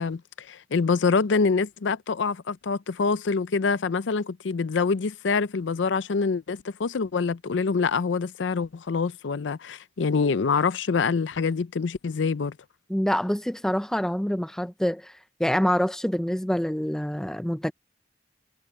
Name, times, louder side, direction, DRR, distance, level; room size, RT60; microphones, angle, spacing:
voice 1, 0.0-12.5, left 4 dB, 80° left, 0.5 m, -25 dB
voice 2, 12.9-17.7, equal, 5° left, 0.4 m, -26 dB
head